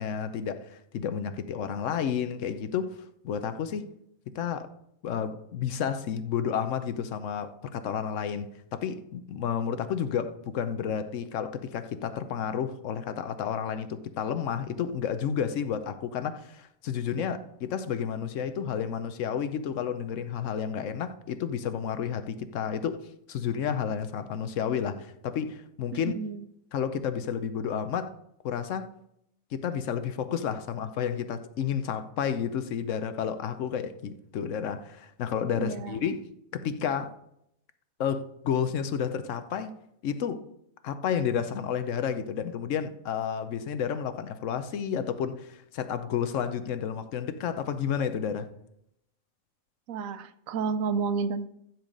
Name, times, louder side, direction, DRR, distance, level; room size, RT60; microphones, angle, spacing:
voice 1, 0.0-3.9 4.3-4.7 5.0-23.0 23.3-26.1 26.7-28.1 28.4-28.9 29.5-36.2 36.5-37.1 38.0-39.7 40.0-40.4 40.8-48.5, left 8 dB, 70° left, 1.0 m, -31 dB
voice 2, 25.9-26.4 35.5-36.0 49.9-51.5, right 5 dB, 80° right, 1.0 m, -31 dB
10.5 x 4.6 x 5.2 m
omnidirectional pair, 1.4 m